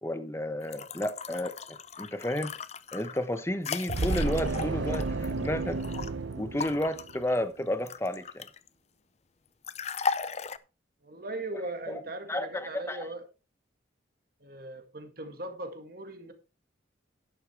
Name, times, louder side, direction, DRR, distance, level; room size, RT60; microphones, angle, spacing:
voice 1, 0.0-2.5 2.9-5.8 6.4-8.5 11.9-12.0 12.3-13.1, left 1 dB, 15° left, 1.0 m, -32 dB
sound 1, 0.6-6.1 6.6-8.7 9.6-10.6, left 5 dB, 35° left, 0.5 m, -37 dB
sound 2, 3.9-7.3, right 3 dB, 75° right, 0.8 m, -32 dB
voice 2, 11.0-13.3 14.4-16.3, right 2 dB, 50° right, 1.9 m, -39 dB
11.5 x 11.0 x 3.4 m
head